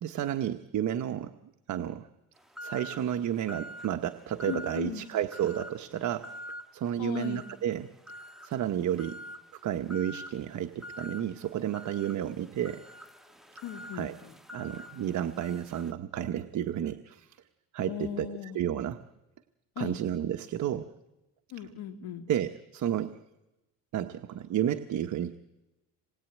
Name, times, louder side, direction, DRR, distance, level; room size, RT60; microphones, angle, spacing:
voice 1, 0.0-1.3 1.7-2.1 2.6-6.3 6.7-7.9 8.4-9.2 9.5-12.8 13.9-14.1 14.5-17.4 17.7-19.0 19.8-20.9 22.3-23.2 23.9-25.4, right 10 dB, 45° right, 8 dB, 1.1 m, -31 dB
sound 1, 2.6-3.1 3.5-3.9 4.4-4.9 5.3-5.8 6.2-6.7 7.1-7.6 8.1-8.5 9.0-9.4 9.9-10.3 10.8-11.2 11.7-15.9, equal, ahead, 1.6 m, -44 dB
voice 2, 4.5-5.1 7.0-7.5 13.6-14.3 17.9-18.6 19.8-20.0 21.5-22.3, left 9 dB, 70° left, 7 dB, 2.5 m, -38 dB
27.0 x 20.5 x 9.2 m, 0.98 s
cardioid pair, 135°, 39 cm